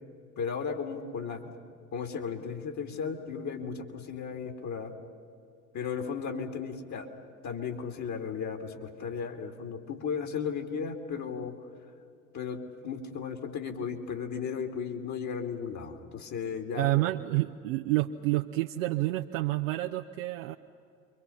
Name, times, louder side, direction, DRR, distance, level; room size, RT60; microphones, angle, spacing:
voice 1, 0.4-1.5 1.9-4.9 5.7-7.1 7.4-11.5 12.3-17.0, left 6 dB, 40° left, 5 dB, 2.6 m, -35 dB
voice 2, 16.7-20.6, right 18 dB, 65° right, 5 dB, 0.8 m, -29 dB
29.5 x 23.5 x 5.7 m, 2.4 s
figure-of-eight pair, 70°, 42 cm